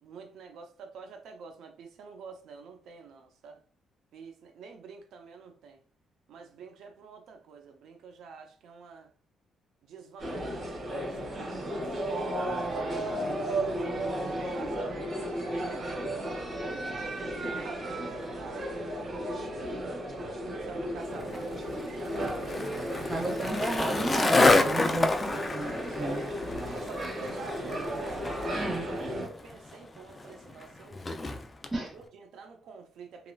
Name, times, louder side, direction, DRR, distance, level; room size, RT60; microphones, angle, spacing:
voice 1, 0.0-3.6 4.1-5.8 6.3-9.1 9.8-15.9 16.5-20.1 20.4-23.2 23.5-23.6 24.6-24.9 26.0-26.3 26.7-31.0 31.8-33.3, right 5 dB, 75° right, 0.6 m, -48 dB
sound 1, 10.2-29.3, right 1 dB, 50° right, 1.5 m, -34 dB
Skateboard, 21.2-31.7, left 2 dB, 30° left, 0.4 m, -29 dB
voice 2, 23.1-26.3 28.5-28.9 31.7-31.9, right 2 dB, 20° right, 0.6 m, -33 dB
2.9 x 2.5 x 2.3 m
cardioid pair, 90°, 0 cm